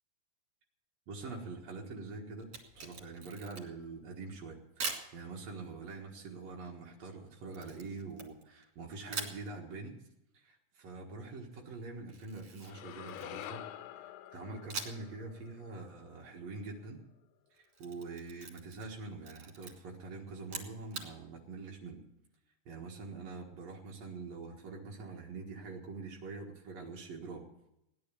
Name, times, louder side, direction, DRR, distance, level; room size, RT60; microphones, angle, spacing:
voice 1, 1.1-2.5 2.7-10.0 10.3-13.6 14.3-17.0 17.6-22.0 22.6-27.4, right 3 dB, 85° right, -1 dB, 1.4 m, -45 dB
Camera, 2.4-3.9 4.8-5.1 7.5-8.7 9.1-9.4 12.1-13.6 14.7-15.1 15.5-15.6 17.5-18.9 19.2-19.7 20.4-21.1, right 4 dB, 45° right, 2.6 m, -42 dB
sound 1, 12.6-16.9, left 12 dB, 90° left, 3.5 m, -48 dB
17.0 x 10.5 x 6.9 m, 0.86 s
omnidirectional pair, 5.8 m